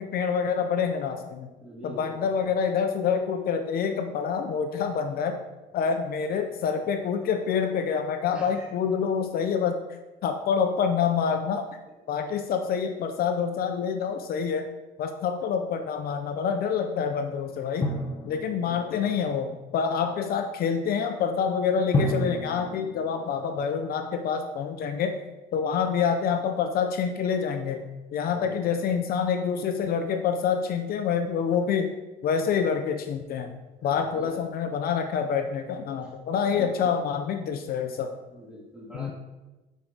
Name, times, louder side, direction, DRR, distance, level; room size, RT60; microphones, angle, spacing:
voice 1, 0.0-1.5 1.8-5.4 5.7-9.8 10.2-11.7 12.1-14.7 15.0-17.9 18.2-25.2 25.5-32.0 32.2-38.2 38.9-39.1, left 6 dB, 65° left, 6 dB, 0.7 m, -27 dB
voice 2, 1.6-2.5 8.3-8.7 18.5-19.2 28.3-28.9 33.8-34.4 36.0-36.1 36.4-36.9 38.3-39.1, equal, 5° right, -4 dB, 2.4 m, -44 dB
Drum, 17.8-19.3 21.9-24.1, left 1 dB, 30° left, 1.2 m, -31 dB
9.3 x 4.7 x 4.0 m, 1.1 s
cardioid pair, 110°, 17 cm